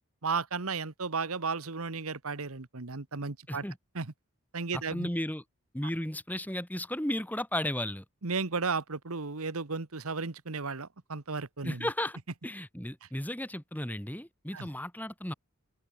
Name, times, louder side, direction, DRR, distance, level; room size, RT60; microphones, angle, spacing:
voice 1, 0.2-3.6 3.9-4.1 4.5-5.1 8.2-11.9 14.5-14.7, right 4 dB, 80° right, 1.4 m, -34 dB
voice 2, 4.7-5.4 5.7-8.0 11.6-12.2 12.4-15.3, left 1 dB, 5° left, 2.1 m, -34 dB
open air
head